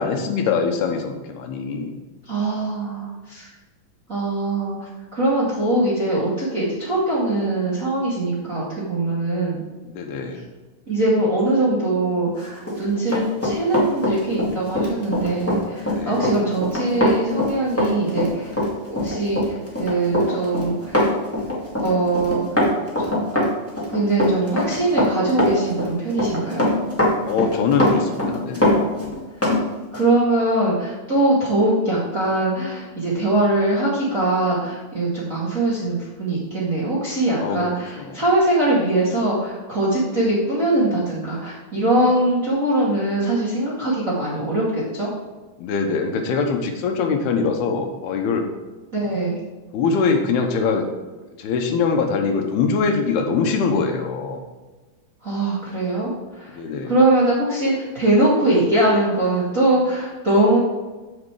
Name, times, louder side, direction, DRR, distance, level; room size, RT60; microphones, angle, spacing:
voice 1, 0.0-2.0 9.8-10.4 15.8-16.4 27.2-28.7 37.4-37.6 38.0-38.2 45.6-48.4 49.7-50.9 51.4-54.4 56.5-56.9, left 5 dB, 80° left, 4 dB, 3.0 m, -23 dB
voice 2, 2.3-3.5 4.1-9.6 10.9-18.5 18.9-21.0 21.8-22.7 23.0-23.1 23.9-26.7 29.9-45.1 48.9-49.4 55.2-56.6 56.9-60.6, right 2 dB, 30° right, -7 dB, 1.8 m, -22 dB
Run, 12.6-29.6 29.9-30.1, left 1 dB, 5° left, 1.1 m, -22 dB
8.0 x 7.6 x 4.8 m, 1.2 s
omnidirectional pair, 4.6 m